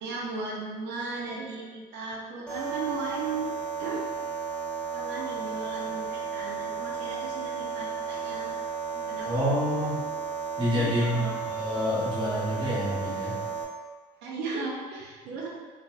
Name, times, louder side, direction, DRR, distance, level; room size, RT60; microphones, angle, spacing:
voice 1, 0.0-3.5 3.8-4.0 4.9-8.6 8.9-9.4 10.8-11.3 14.2-15.5, right 3 dB, 90° right, -4 dB, 0.5 m, -36 dB
sound 1, 2.5-13.6, right 6 dB, 5° left, 0.5 m, -34 dB
voice 2, 9.3-10.0 10.6-13.4, left 1 dB, 25° right, -7 dB, 1.0 m, -28 dB
3.3 x 2.0 x 2.3 m, 1.4 s
cardioid pair, 110°, 17 cm